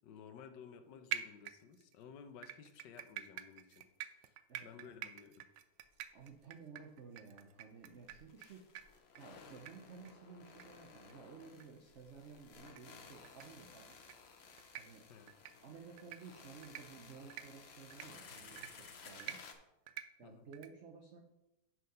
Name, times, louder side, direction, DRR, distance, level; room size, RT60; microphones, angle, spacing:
voice 1, 0.0-3.9 4.2-5.5 15.1-15.3 20.2-20.5, left 7 dB, 70° left, 8 dB, 1.4 m, -55 dB
sound 1, 1.1-1.9 2.4-8.5 8.7-8.8 9.1-9.3 9.7-9.8 10.0-10.1 10.6-10.7 11.0-11.1 11.6-11.7 12.7-12.8 13.2-13.4 13.9-14.1 14.6-14.8 15.3-15.5 16.0-16.2 16.6-16.8 17.3-17.4 17.9-18.0 18.6-18.7 19.2-19.4 19.9-20.0 20.5-20.7, right 12 dB, 75° right, 1.2 m, -45 dB
voice 2, 4.5-4.9 6.1-8.7 9.2-13.9 14.7-15.0 15.6-19.4 20.2-21.2, right 5 dB, 55° right, 0 dB, 0.9 m, -54 dB
sound 2, 5.8-6.0 6.2-6.3 7.9-19.5, left 5 dB, 55° left, 0.7 m, -57 dB
6.3 x 5.7 x 5.3 m, 0.92 s
omnidirectional pair, 2.0 m